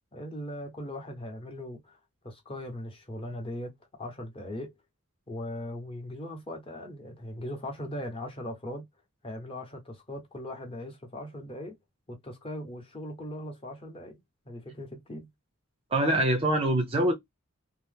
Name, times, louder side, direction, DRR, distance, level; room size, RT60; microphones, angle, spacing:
voice 1, 0.1-2.0 2.2-4.7 5.3-8.9 9.2-11.8 12.1-15.3, left 1 dB, 25° left, 0.8 m, -39 dB
voice 2, 15.9-17.1, right 1 dB, 25° right, 0.5 m, -24 dB
2.7 x 2.0 x 3.3 m
head